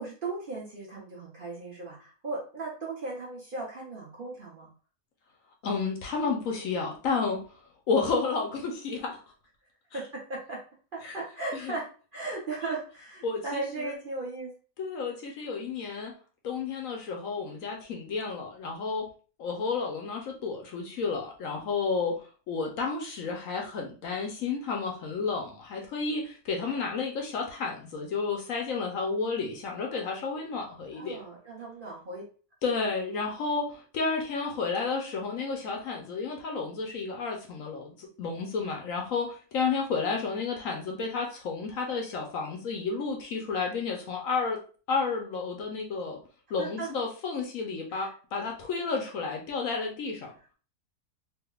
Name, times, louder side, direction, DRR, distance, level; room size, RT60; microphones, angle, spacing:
voice 1, 0.0-4.7 9.9-10.6 10.9-14.5 30.9-32.2 46.6-46.9 47.9-48.1, right 3 dB, 40° right, -4 dB, 0.9 m, -37 dB
voice 2, 5.6-7.4 7.9-9.2 9.9-10.0 11.0-11.1 11.5-11.8 12.6-12.7 13.2-13.9 14.8-16.1 16.4-19.1 19.4-22.2 22.5-31.2 32.6-44.6 44.9-46.2 46.5-50.3, left 4 dB, 65° left, 1 dB, 1.0 m, -31 dB
3.4 x 2.8 x 2.3 m, 0.37 s
omnidirectional pair, 1.6 m